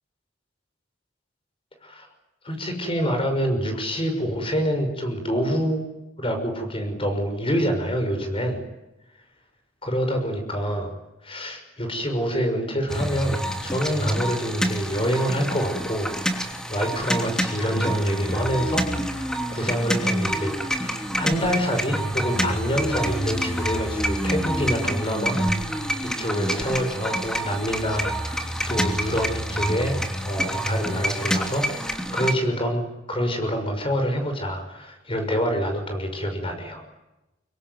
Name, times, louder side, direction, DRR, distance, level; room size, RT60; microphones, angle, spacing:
voice 1, 2.4-5.8 6.2-8.6 9.8-10.9 11.2-36.8, equal, 30° left, 5 dB, 6.1 m, -27 dB
sound 1, 12.9-32.3, equal, 5° left, 3.0 m, -27 dB
25.5 x 24.0 x 9.6 m, 0.97 s
head